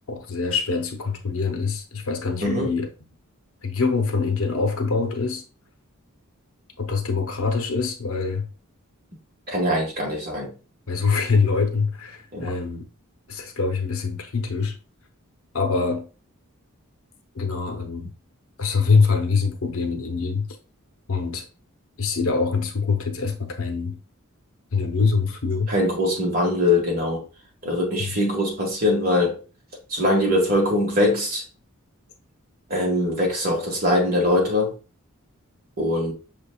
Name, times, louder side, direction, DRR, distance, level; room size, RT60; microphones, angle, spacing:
voice 1, 0.1-2.9 3.6-5.4 6.8-8.5 10.9-12.8 13.3-14.7 15.5-16.1 17.3-18.1 18.6-20.5 21.1-21.5 22.0-24.0 24.7-25.7 28.0-28.1, left 4 dB, 70° left, 0.8 m, -24 dB
voice 2, 9.5-10.5 12.3-12.5 25.7-27.2 27.6-29.4 29.9-31.4 32.7-34.7 35.8-36.1, left 1 dB, 45° right, 1.6 m, -22 dB
6.1 x 3.5 x 2.3 m
head